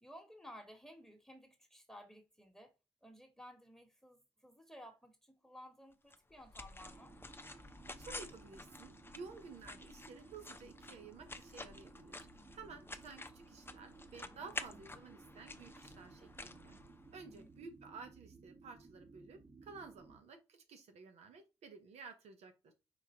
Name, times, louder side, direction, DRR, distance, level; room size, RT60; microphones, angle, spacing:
voice 1, 0.0-2.7 3.0-7.1 9.2-9.4 12.3-12.9 14.7-14.8 17.2-17.5, equal, 5° left, 1.6 m, -56 dB
sound 1, 6.1-17.4, left 2 dB, 20° left, 0.7 m, -51 dB
sound 2, 6.8-20.2, right 3 dB, 45° right, 1.7 m, -59 dB
voice 2, 8.0-16.8 17.1-22.7, right 4 dB, 80° right, 0.9 m, -53 dB
4.9 x 2.8 x 3.7 m
supercardioid pair, 40°, 11 cm